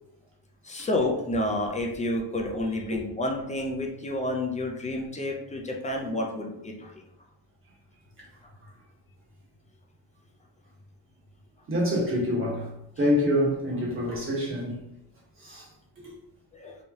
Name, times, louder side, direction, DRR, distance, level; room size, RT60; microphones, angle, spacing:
voice 1, 0.6-7.0 16.5-16.8, left 1 dB, 20° left, 0.4 m, -30 dB
voice 2, 11.7-12.7 13.0-14.9 15.4-15.7 16.0-16.1, left 1 dB, 30° right, 1.1 m, -27 dB
3.2 x 2.7 x 3.4 m
cardioid pair, 165°, 42 cm